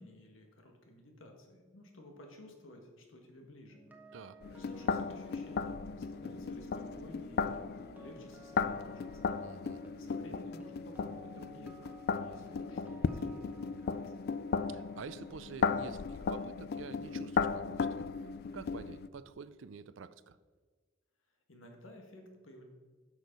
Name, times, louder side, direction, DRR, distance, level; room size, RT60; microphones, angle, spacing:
voice 1, 0.0-3.8 4.5-9.3 10.0-14.0 21.5-22.6, left 1 dB, 85° left, 3 dB, 1.7 m, -54 dB
sound 1, 3.7-17.8 18.0-18.3, equal, 10° right, 1.0 m, -55 dB
sound 2, 4.4-19.1, left 5 dB, 50° left, 0.3 m, -36 dB
voice 2, 9.4-9.8 14.7-18.0 18.5-20.4, right 5 dB, 70° right, 15 dB, 0.5 m, -48 dB
10.5 x 6.4 x 5.3 m, 1.5 s
head